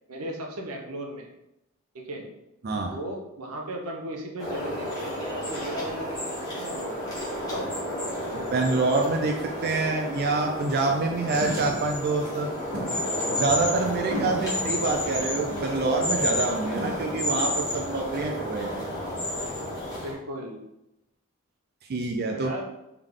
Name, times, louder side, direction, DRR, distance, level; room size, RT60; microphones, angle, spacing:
voice 1, 0.1-1.3 1.9-2.3 2.9-7.1 7.5-7.7 20.0-20.6 22.3-22.7, right 1 dB, 85° right, 1 dB, 0.8 m, -36 dB
voice 2, 2.6-3.0 8.3-12.5 13.3-18.8 21.9-22.5, right 3 dB, 45° right, 2 dB, 0.4 m, -26 dB
sound 1, 4.4-20.1, left 1 dB, 20° left, 1.5 m, -31 dB
sound 2, 11.3-12.0 12.7-14.9 15.5-15.8 16.3-17.1, equal, 65° right, 1.1 m, -36 dB
3.6 x 3.3 x 3.6 m, 0.90 s
head